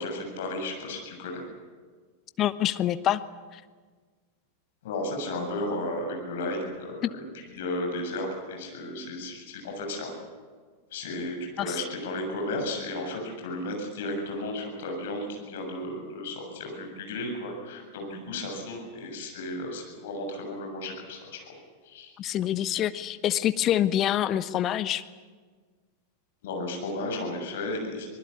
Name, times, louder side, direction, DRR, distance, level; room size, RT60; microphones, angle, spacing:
voice 1, 0.0-1.5 4.8-10.1 10.9-21.5 21.8-22.1 26.4-28.1, left 1 dB, 55° left, 2 dB, 7.3 m, -34 dB
voice 2, 2.4-3.2 7.0-7.1 11.6-11.8 22.2-25.0, left 12 dB, 30° left, 14 dB, 1.0 m, -26 dB
25.0 x 20.0 x 8.5 m, 1.5 s
figure-of-eight pair, 90°, 0 cm